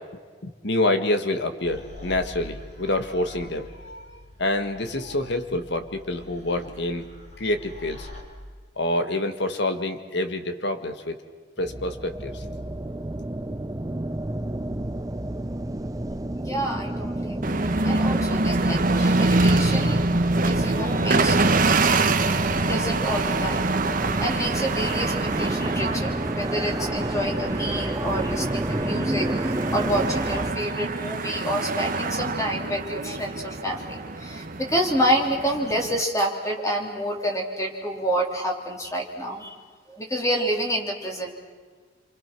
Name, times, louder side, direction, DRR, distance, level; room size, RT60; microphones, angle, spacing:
voice 1, 0.4-7.1 7.4-8.1 8.8-11.2 11.6-12.4, left 1 dB, 65° left, 8 dB, 1.8 m, -27 dB
sound 1, 1.6-8.2, left 1 dB, 40° left, 4.7 m, -44 dB
sound 2, 11.6-30.5, right 1 dB, 20° right, 0.7 m, -31 dB
voice 2, 16.4-20.0 20.4-21.6 22.7-39.6 39.9-41.3, equal, 15° left, 1 dB, 3.7 m, -28 dB
sound 3, 17.4-36.0, right 2 dB, 50° right, 1.2 m, -25 dB
29.0 x 25.0 x 6.1 m, 1.5 s
head